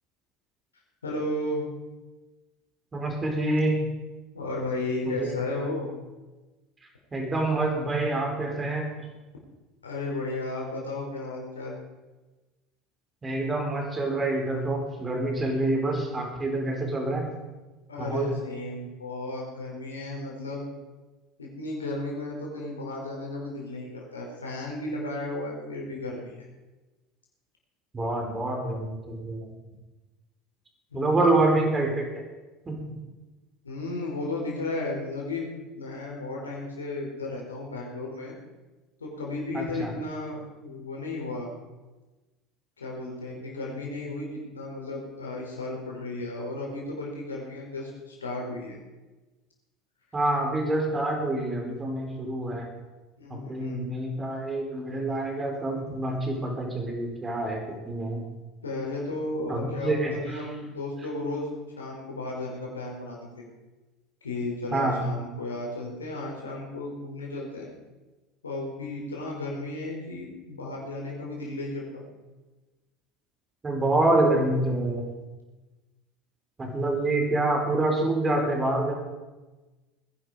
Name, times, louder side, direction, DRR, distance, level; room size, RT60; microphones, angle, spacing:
voice 1, 1.0-1.6 4.3-5.9 9.8-11.8 17.9-20.6 21.4-26.5 30.9-31.3 33.6-35.5 35.7-38.3 39.0-41.5 42.8-48.8 53.2-53.8 58.6-61.5 61.8-63.5 64.2-67.7 68.4-72.0, left 2 dB, 90° left, -2 dB, 4.7 m, -34 dB
voice 2, 2.9-3.8 5.0-5.4 7.1-8.9 13.2-17.3 18.0-18.3 27.9-29.5 30.9-32.2 32.6-32.8 39.5-39.9 50.1-52.7 53.3-58.2 59.5-60.5 64.7-65.0 73.6-75.1 76.6-78.9, right 2 dB, 25° right, 2 dB, 4.8 m, -27 dB
20.0 x 11.0 x 5.2 m, 1.2 s
hypercardioid pair, 75°, 0 cm